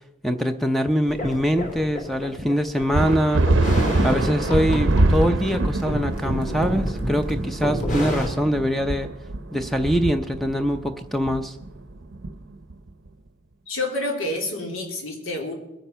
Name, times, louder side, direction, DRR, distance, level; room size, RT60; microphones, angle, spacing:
voice 1, 0.2-3.4 4.0-9.1 9.5-11.6, equal, ahead, 7 dB, 0.5 m, -23 dB
sound 1, 1.1-8.3, equal, 40° left, 3.3 m, -29 dB
sound 2, 2.9-12.9, right 2 dB, 65° right, 0.7 m, -24 dB
voice 2, 13.7-15.6, left 2 dB, 85° left, 1 dB, 3.4 m, -28 dB
21.5 x 9.1 x 5.7 m, 0.92 s
head